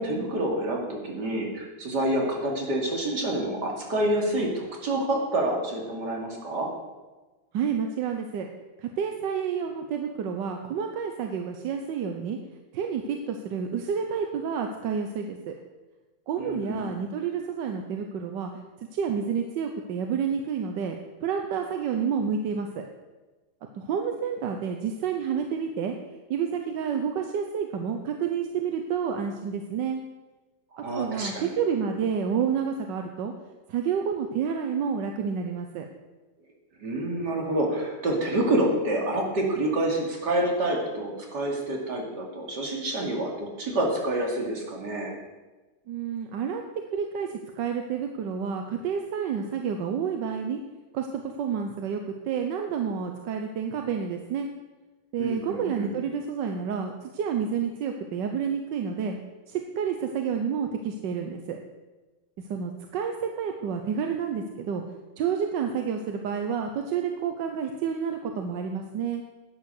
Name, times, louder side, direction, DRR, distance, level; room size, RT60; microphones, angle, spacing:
voice 1, 0.0-6.7 16.4-16.9 30.7-31.5 36.8-45.1 55.2-55.9, right 1 dB, 70° right, -1 dB, 3.0 m, -28 dB
voice 2, 7.5-8.5 8.8-12.4 12.7-15.5 16.3-18.5 18.9-22.9 23.7-25.9 26.3-30.0 31.0-33.3 33.7-35.8 45.9-46.6 46.9-50.6 50.9-54.5 55.1-59.2 59.5-61.6 62.5-64.8 65.2-69.2, right 7 dB, 90° right, 4 dB, 1.5 m, -29 dB
11.5 x 9.2 x 6.6 m, 1.2 s
omnidirectional pair, 1.9 m